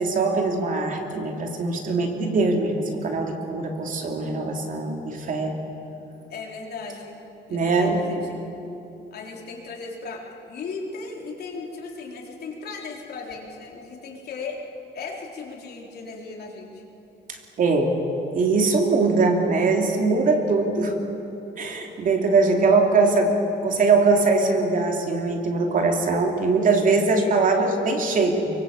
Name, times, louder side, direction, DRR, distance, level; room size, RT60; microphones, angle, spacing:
voice 1, 0.0-5.6 7.5-8.2 17.3-17.9 18.3-20.9 21.6-23.3 23.6-28.5, right 3 dB, 45° right, 3 dB, 3.0 m, -22 dB
voice 2, 6.3-7.2 7.5-8.4 9.1-14.6 14.9-16.8, left 4 dB, 60° left, 0 dB, 4.1 m, -37 dB
24.0 x 23.5 x 8.5 m, 2.9 s
cardioid pair, 155°, 19 cm